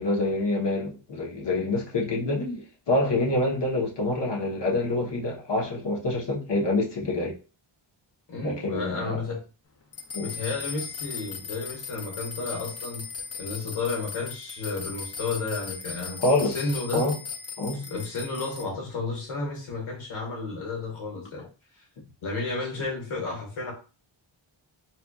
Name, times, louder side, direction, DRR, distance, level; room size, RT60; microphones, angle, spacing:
voice 1, 0.0-7.4 8.4-9.2 10.1-10.3 16.2-16.6 16.9-17.2 17.6-17.8 22.7-22.8, left 2 dB, 55° left, 1.0 m, -26 dB
voice 2, 8.3-9.4 10.2-13.1 13.4-16.2 16.5-17.1 17.7-21.5 22.2-23.7, left 3 dB, 80° left, 1.3 m, -32 dB
sound 1, 9.9-18.6, left 5 dB, 35° left, 0.4 m, -38 dB
4.2 x 2.4 x 2.3 m
wide cardioid pair, 150°, 49 cm